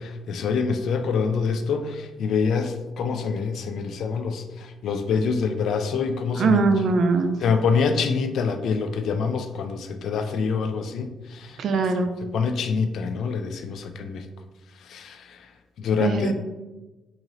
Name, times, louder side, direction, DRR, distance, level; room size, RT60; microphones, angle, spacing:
voice 1, 0.0-6.7 7.4-11.6 12.2-14.3 14.8-15.5 15.8-16.3, left 5 dB, 70° left, 7 dB, 0.4 m, -26 dB
voice 2, 6.4-7.4 11.6-12.1 16.0-16.3, right 4 dB, 65° right, 7 dB, 0.4 m, -21 dB
3.8 x 2.5 x 3.0 m, 1.1 s
cardioid pair, 90°, 0 cm